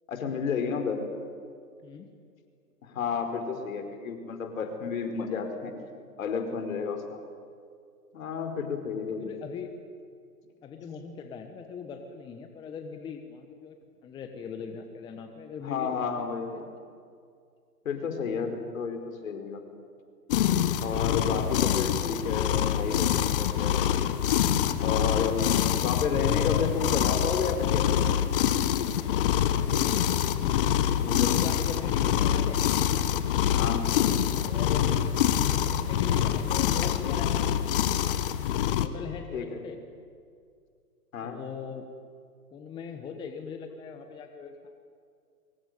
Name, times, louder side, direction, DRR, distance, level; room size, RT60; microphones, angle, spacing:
voice 1, 0.1-1.0 2.8-5.7 6.2-7.2 8.1-9.3 15.6-16.7 17.8-19.6 20.8-23.7 24.8-25.5 25.8-28.0 31.0-31.6 33.6-33.8 39.3-39.6 41.1-41.4, left 5 dB, 55° left, 6 dB, 4.9 m, -31 dB
voice 2, 9.2-9.7 10.6-13.8 14.0-16.3 18.3-18.4 29.5-30.0 30.9-32.6 34.4-34.9 35.6-37.4 37.8-38.1 38.8-39.8 41.2-41.9 42.5-44.5, left 6 dB, 10° left, 6 dB, 1.1 m, -40 dB
sound 1, 20.3-38.9, left 10 dB, 35° left, 1.4 m, -25 dB
24.0 x 24.0 x 9.4 m, 2.3 s
figure-of-eight pair, 135°, 48 cm